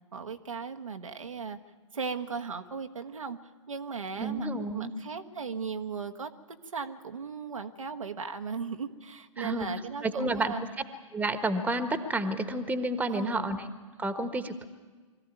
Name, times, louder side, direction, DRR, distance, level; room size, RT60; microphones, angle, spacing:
voice 1, 0.1-1.6 1.9-3.4 3.7-4.5 4.7-10.6 13.1-13.5, right 5 dB, 85° right, 5 dB, 1.4 m, -37 dB
voice 2, 4.2-4.9 9.4-9.7 10.0-10.5 11.1-13.7 14.0-14.7, right 2 dB, 10° right, 10 dB, 1.4 m, -30 dB
23.5 x 15.0 x 9.2 m, 1.4 s
figure-of-eight pair, 110°, 17 cm